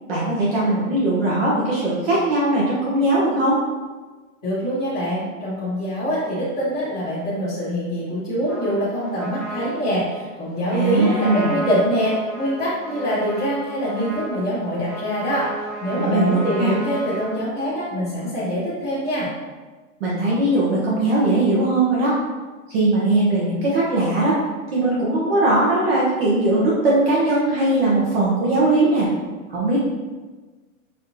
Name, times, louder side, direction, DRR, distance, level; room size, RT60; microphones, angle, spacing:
voice 1, 0.1-3.6 10.7-11.5 15.9-16.7 20.0-22.2 22.7-24.4 24.7-29.1 29.5-29.8, right 2 dB, 45° right, -6 dB, 0.9 m, -19 dB
voice 2, 4.4-15.5 15.8-19.3, equal, 5° left, -18 dB, 0.3 m, -24 dB
Trumpet, 8.4-17.3, right 1 dB, 10° right, 1.0 m, -34 dB
5.4 x 2.6 x 2.7 m, 1.3 s
supercardioid pair, 170°, 42 cm